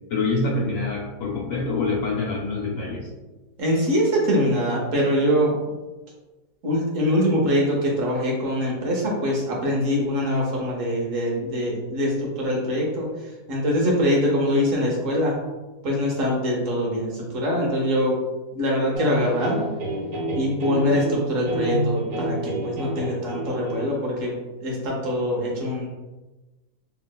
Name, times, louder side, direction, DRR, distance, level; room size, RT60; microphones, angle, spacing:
voice 1, 0.1-3.1, left 3 dB, 65° left, -3 dB, 1.3 m, -25 dB
voice 2, 3.6-5.5 6.6-15.4 15.8-18.2 18.5-19.6 20.3-25.9, equal, 60° right, -3 dB, 1.1 m, -23 dB
sound 1, 18.9-24.0, right 1 dB, 90° right, 1.3 m, -29 dB
3.1 x 2.9 x 2.2 m, 1.1 s
omnidirectional pair, 1.6 m